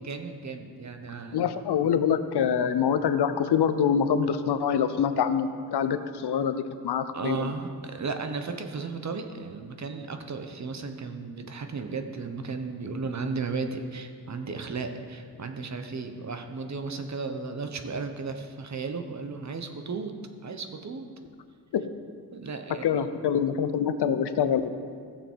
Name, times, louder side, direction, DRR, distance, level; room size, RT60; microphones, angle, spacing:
voice 1, 0.0-1.4 7.1-21.1 22.3-22.9, right 4 dB, 45° right, 6 dB, 0.9 m, -35 dB
voice 2, 1.3-7.5 21.7-21.9 22.8-24.7, left 7 dB, 80° left, 10 dB, 0.7 m, -25 dB
16.0 x 6.9 x 4.6 m, 2.1 s
wide cardioid pair, 120°, 39 cm